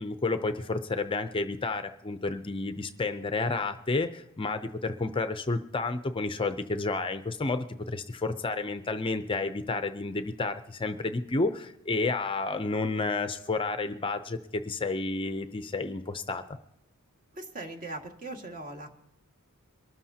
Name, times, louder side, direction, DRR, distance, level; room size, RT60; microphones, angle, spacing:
voice 1, 0.0-16.4, left 3 dB, 25° left, 9 dB, 0.5 m, -31 dB
voice 2, 17.3-18.9, right 2 dB, 40° right, 2 dB, 1.9 m, -40 dB
23.5 x 13.0 x 2.8 m, 0.83 s
head